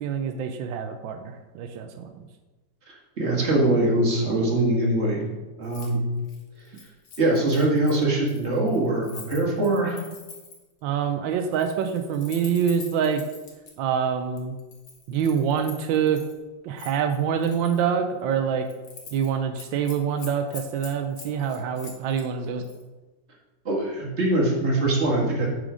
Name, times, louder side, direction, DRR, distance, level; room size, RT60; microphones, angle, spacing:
voice 1, 0.0-2.3 10.8-13.2 13.8-14.6 15.1-16.2 16.6-18.7 19.1-22.6, right 7 dB, 90° right, 6 dB, 1.3 m, -26 dB
voice 2, 3.2-5.2 5.6-6.0 7.2-10.0 23.7-25.5, right 2 dB, 35° right, -3 dB, 1.8 m, -22 dB
Keys jangling, 5.6-5.9 6.2-10.7 11.4-13.7 14.4-16.3 16.8-17.8 18.2-18.4 18.7-19.3 19.6-22.3 22.6-22.8, left 5 dB, 65° left, 1.8 m, -45 dB
7.5 x 4.8 x 5.0 m, 1.2 s
omnidirectional pair, 2.0 m